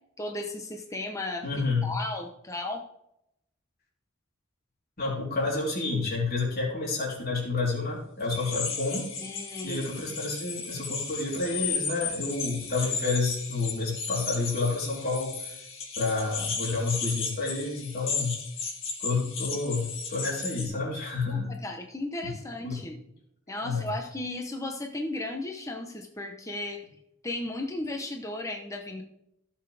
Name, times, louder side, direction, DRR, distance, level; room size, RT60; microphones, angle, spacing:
voice 1, 0.2-1.4 1.8-2.8 9.2-9.9 21.3-23.0 23.5-26.8 27.2-29.0, left 2 dB, 15° left, 3 dB, 1.0 m, -35 dB
voice 2, 1.4-1.9 5.0-9.1 9.6-15.6 16.0-18.3 19.0-21.5 22.6-22.7 23.6-23.9, left 3 dB, 50° left, -4 dB, 3.7 m, -29 dB
sound 1, 8.3-20.7, left 5 dB, 70° left, 2.3 m, -35 dB
16.0 x 7.0 x 3.5 m, 0.79 s
head